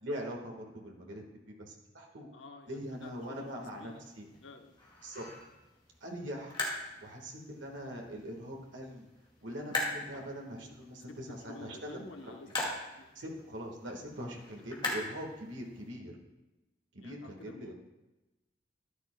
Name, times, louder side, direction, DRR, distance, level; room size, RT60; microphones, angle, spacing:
voice 1, 0.0-2.3 2.7-4.3 5.0-5.3 6.0-6.6 7.0-9.1 9.4-12.1 13.1-16.1 16.9-17.7, equal, 85° right, 0 dB, 1.6 m, -42 dB
voice 2, 2.3-4.0 4.4-4.7 10.1-10.2 11.1-12.5 12.9-13.1 15.0-15.1 17.0-17.7, left 3 dB, 90° left, 5 dB, 0.9 m, -50 dB
sound 1, 2.7-15.9, left 2 dB, 25° left, 2.1 m, -42 dB
13.0 x 10.5 x 2.2 m, 1.0 s
head